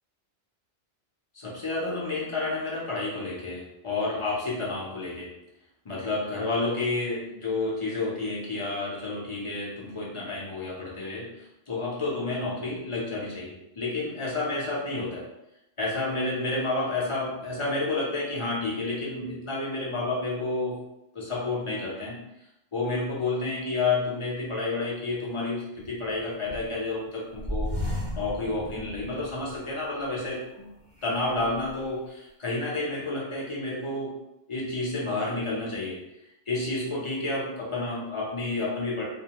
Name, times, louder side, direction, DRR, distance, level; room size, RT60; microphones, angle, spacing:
voice 1, 1.3-5.3 5.8-15.3 15.8-20.8 21.1-22.2 22.7-27.7 28.2-30.7 31.0-34.1 34.5-36.0 36.5-39.0, left 2 dB, 35° left, -5 dB, 0.6 m, -30 dB
sound 1, 25.8-26.9 27.3-29.7 30.2-30.3 31.0-31.7, left 1 dB, 5° right, 0.9 m, -35 dB
2.6 x 2.1 x 2.9 m, 0.86 s
omnidirectional pair, 1.2 m